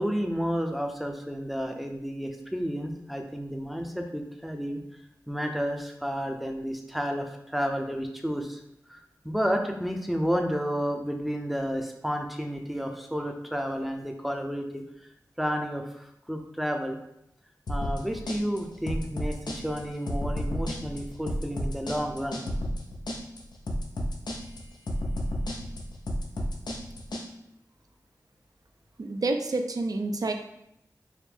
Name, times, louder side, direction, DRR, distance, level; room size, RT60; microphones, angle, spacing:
voice 1, 0.0-4.8 5.3-8.6 8.9-14.9 15.4-17.0 17.7-22.4, equal, ahead, 3 dB, 0.6 m, -31 dB
sound 1, 17.7-27.3, equal, 80° left, 0.6 m, -32 dB
voice 2, 29.0-30.3, right 2 dB, 60° right, 6 dB, 0.5 m, -28 dB
4.9 x 2.1 x 3.4 m, 0.79 s
cardioid pair, 45°, 7 cm